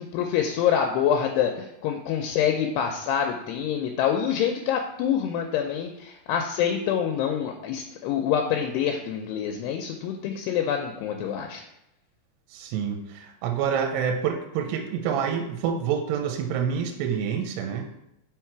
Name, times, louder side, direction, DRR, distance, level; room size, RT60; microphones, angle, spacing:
voice 1, 0.0-11.6, left 8 dB, 80° left, 3 dB, 2.5 m, -26 dB
voice 2, 12.5-17.9, right 7 dB, 80° right, 4 dB, 2.6 m, -27 dB
6.0 x 4.6 x 4.5 m, 0.84 s
omnidirectional pair, 5.0 m